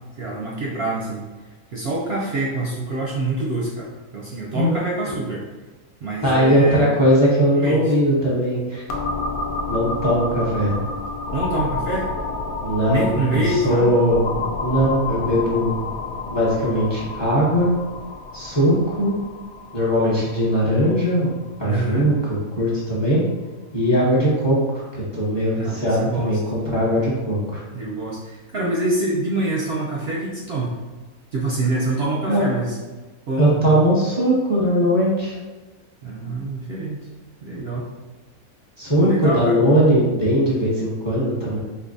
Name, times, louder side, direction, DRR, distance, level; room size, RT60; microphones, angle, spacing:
voice 1, 0.2-1.2 1.7-5.5 6.0-6.9 7.6-7.9 11.3-12.1 12.9-14.0 21.6-22.1 25.6-26.4 27.7-30.8 31.3-32.8 33.3-33.8 36.0-37.0 37.4-37.9 38.9-39.6, right 2 dB, 60° right, -3 dB, 0.7 m, -26 dB
voice 2, 6.2-8.8 9.7-10.7 12.6-13.1 13.3-14.3 14.6-15.7 16.3-17.7 18.3-19.1 19.7-21.3 21.6-23.2 23.7-27.6 32.3-32.4 33.4-35.4 38.8-41.6, equal, 20° left, -6 dB, 0.8 m, -19 dB
sound 1, 8.9-22.5, left 3 dB, 80° left, 1.1 m, -30 dB
4.4 x 2.8 x 2.6 m, 1.2 s
omnidirectional pair, 1.5 m